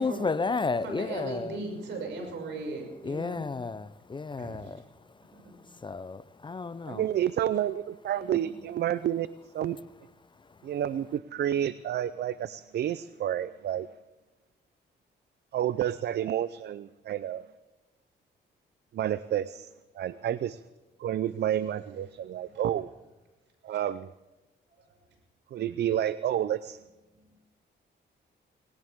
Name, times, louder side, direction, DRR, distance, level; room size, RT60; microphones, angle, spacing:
voice 1, 0.0-1.6 3.0-4.8 5.8-7.0, left 4 dB, 25° left, 0.6 m, -32 dB
voice 2, 0.8-3.4 4.4-4.8 5.3-5.5 7.1-7.2 8.1-8.6 20.1-20.3 22.4-22.6 24.7-25.0, right 3 dB, 80° right, 6.3 m, -39 dB
voice 3, 6.9-9.3 9.5-9.8 10.6-13.9 15.5-17.4 18.9-20.6 21.0-22.9 23.6-24.1 25.5-26.8, right 11 dB, 65° right, 0.5 m, -30 dB
19.5 x 18.0 x 3.6 m
cardioid pair, 85°, 19 cm